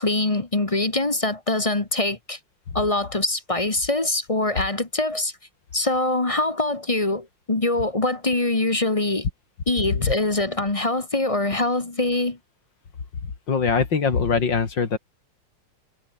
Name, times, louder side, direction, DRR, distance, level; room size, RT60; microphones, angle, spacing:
voice 1, 0.0-2.4 2.7-5.3 5.7-9.3 9.7-12.4, left 2 dB, 20° left, 1.2 m, -23 dB
voice 2, 13.5-15.0, left 5 dB, 55° left, 3.2 m, -22 dB
omnidirectional pair, 2.4 m